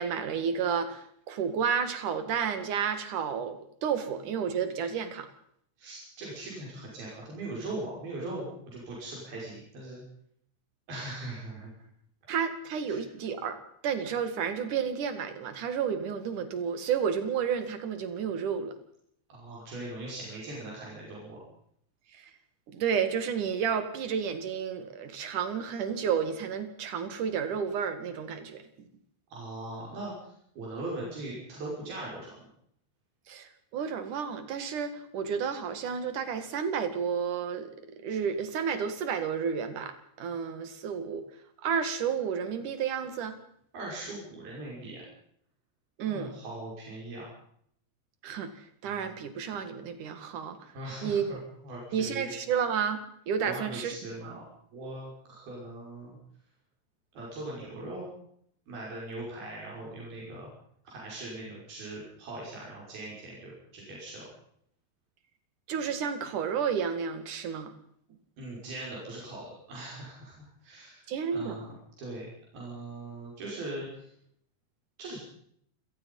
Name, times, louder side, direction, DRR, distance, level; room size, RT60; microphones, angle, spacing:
voice 1, 0.0-5.3 12.3-13.6 13.8-18.7 22.1-22.3 22.7-28.6 33.3-37.7 38.0-41.2 41.6-43.4 46.0-46.3 48.2-48.5 48.8-50.6 51.0-51.4 51.9-54.3 65.7-67.7 71.1-71.6, right 7 dB, 60° right, 10 dB, 3.4 m, -31 dB
voice 2, 5.8-10.0 10.9-11.7 12.9-13.0 19.3-21.4 29.3-32.5 43.7-45.0 46.1-47.3 50.7-52.3 53.4-54.4 54.7-56.2 57.1-58.1 58.7-60.5 60.8-64.2 68.4-71.0 71.3-71.7 72.0-72.3 72.5-74.1 75.0-75.2, right 2 dB, 85° right, -4 dB, 7.7 m, -40 dB
28.0 x 17.5 x 5.5 m, 0.68 s
omnidirectional pair, 4.2 m